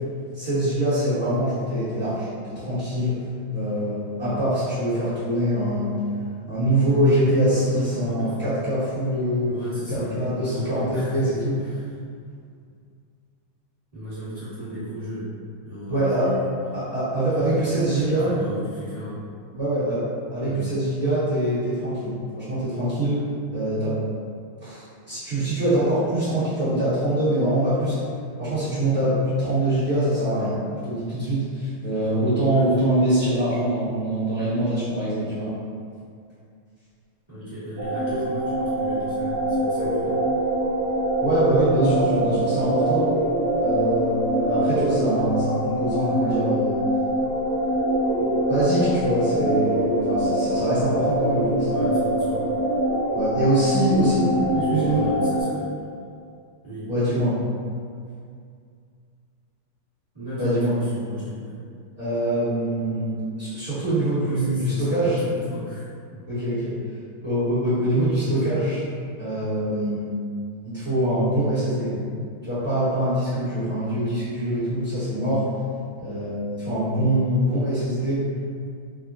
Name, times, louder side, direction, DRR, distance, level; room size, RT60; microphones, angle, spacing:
voice 1, 0.3-2.3 2.5-3.1 3.5-6.0 6.5-9.5 9.9-10.8 11.1-11.6 15.9-16.3 16.7-18.3 19.5-20.0 20.3-23.2 23.5-23.9 24.6-27.9 28.4-30.5 30.8-35.5 41.2-43.0 43.6-46.8 48.2-51.8 53.1-54.2 54.5-55.0 56.9-57.4 60.4-60.7 62.0-65.2 66.3-66.7 67.2-68.8 69.2-70.1 70.6-71.9 72.4-75.4 76.0-78.2, right 1 dB, 40° right, -17 dB, 1.2 m, -24 dB
voice 2, 7.7-8.4 9.5-11.9 13.9-15.3 15.6-16.5 17.3-19.2 20.4-20.7 32.5-32.9 37.3-40.2 46.1-46.4 51.6-52.5 54.0-55.9 56.6-56.9 60.1-61.6 64.2-66.2 68.2-68.6, equal, 20° right, -16 dB, 0.9 m, -35 dB
sound 1, 37.8-55.4, right 1 dB, 80° right, 1.4 m, -24 dB
3.5 x 2.1 x 2.5 m, 2.3 s
omnidirectional pair, 2.3 m